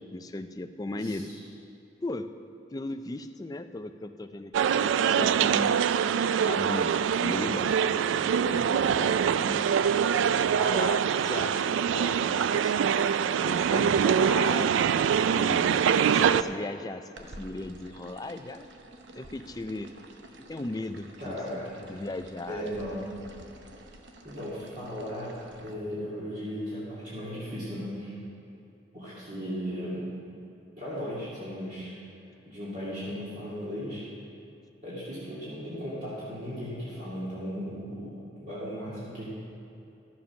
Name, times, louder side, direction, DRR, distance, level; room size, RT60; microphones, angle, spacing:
voice 1, 0.1-1.3 2.0-2.3 2.7-5.8 6.3-6.9 7.2-9.6 10.6-12.7 13.4-14.7 15.3-15.8 16.1-18.7 19.1-19.9 20.5-23.0, left 2 dB, 20° left, 9 dB, 0.4 m, -37 dB
voice 2, 0.9-1.2 21.2-21.8 22.5-23.0 24.2-28.1 28.9-30.1 30.8-31.9 32.5-34.1 34.8-39.3, equal, 45° right, -10 dB, 2.4 m, -36 dB
sound 1, 4.5-16.4, right 7 dB, 90° right, 0.3 m, -24 dB
sound 2, 17.2-25.7, right 1 dB, 75° right, 0.9 m, -50 dB
13.0 x 7.4 x 5.9 m, 2.7 s
head